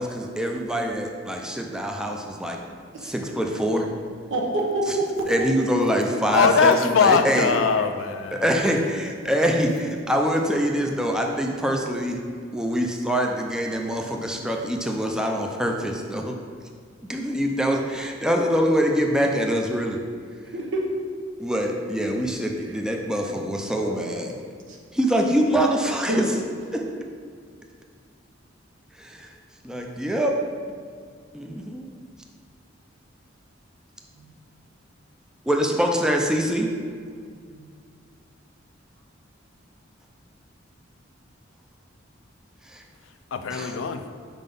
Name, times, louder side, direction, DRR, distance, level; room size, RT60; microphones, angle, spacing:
voice 1, 0.0-2.6 3.0-3.9 4.9-5.0 5.3-7.5 8.3-12.2 12.5-16.3 17.1-20.0 21.4-24.3 24.9-26.3 26.7-26.8 29.0-29.3 29.6-30.4 31.3-31.9 35.5-36.7 42.7-42.8 43.5-43.7, equal, 5° right, 1 dB, 0.4 m, -24 dB
voice 2, 4.3-4.8 20.5-20.8 23.7-24.8 26.1-26.2 34.2-34.3 37.5-37.6, right 1 dB, 70° right, -1 dB, 1.0 m, -28 dB
voice 3, 6.3-8.5 43.3-44.0, left 5 dB, 85° left, 8 dB, 0.4 m, -21 dB
4.9 x 3.8 x 5.3 m, 2.1 s
head